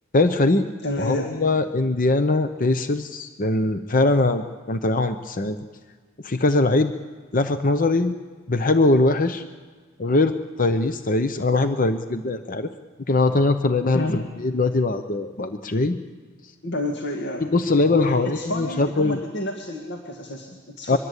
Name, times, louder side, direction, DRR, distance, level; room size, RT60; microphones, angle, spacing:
voice 1, 0.1-0.7 1.0-5.6 6.2-6.9 7.3-8.1 8.5-9.4 10.0-12.7 13.1-16.0 17.4-19.2 20.9-21.0, left 2 dB, 40° left, 9 dB, 0.8 m, -21 dB
voice 2, 0.8-1.3 13.9-14.2 16.6-17.5 17.9-21.0, left 1 dB, 55° left, 3 dB, 2.0 m, -29 dB
23.5 x 22.0 x 8.2 m, 1.4 s
head